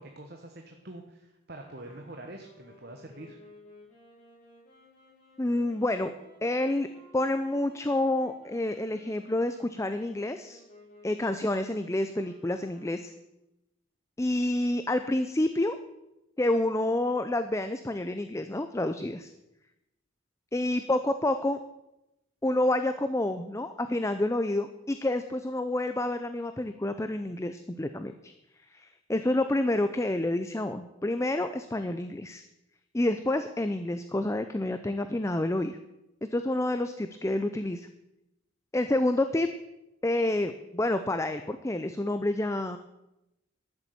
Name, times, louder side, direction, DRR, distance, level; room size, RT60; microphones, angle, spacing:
voice 1, 0.0-3.4, right 1 dB, 50° right, 3 dB, 1.2 m, -45 dB
sound 1, 1.5-13.4, left 1 dB, 35° left, 6.3 m, -56 dB
voice 2, 5.4-6.1 6.4-6.9 7.1-10.6 11.0-13.1 14.2-15.8 16.4-19.3 20.5-21.6 22.4-28.3 28.7-32.4 32.9-35.8 36.3-37.9 38.7-39.5 40.0-42.8, left 1 dB, 15° left, 9 dB, 0.4 m, -28 dB
12.5 x 7.2 x 8.5 m, 0.93 s
head